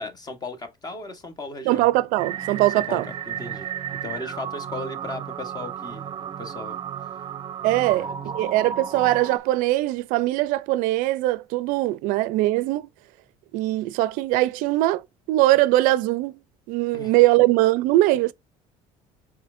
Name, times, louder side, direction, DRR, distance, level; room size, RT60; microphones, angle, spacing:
voice 1, 0.0-1.8 2.7-3.7 4.0-6.8 7.9-8.3 16.9-17.1, left 2 dB, 30° left, 1.1 m, -36 dB
voice 2, 1.7-3.1 7.6-12.9 13.5-15.0 15.3-16.4 16.7-18.3, right 17 dB, 75° right, 0.4 m, -21 dB
sound 1, 2.2-9.4, right 8 dB, 35° right, 0.6 m, -33 dB
4.4 x 4.2 x 2.4 m
cardioid pair, 110°, 14 cm